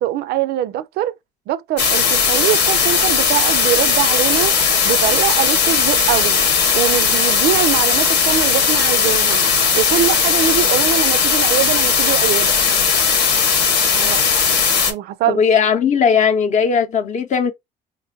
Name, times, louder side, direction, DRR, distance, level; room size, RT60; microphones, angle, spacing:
voice 1, 0.0-1.1 1.5-4.6 4.8-6.4 6.7-9.4 9.7-12.6 13.9-14.2 14.9-15.4, right 12 dB, 70° right, 0.4 m, -22 dB
sound 1, 1.8-14.9, left 6 dB, 80° left, 1.1 m, -17 dB
voice 2, 15.3-17.5, left 6 dB, 45° left, 0.7 m, -17 dB
3.9 x 2.5 x 2.6 m
cardioid pair, 110°, 17 cm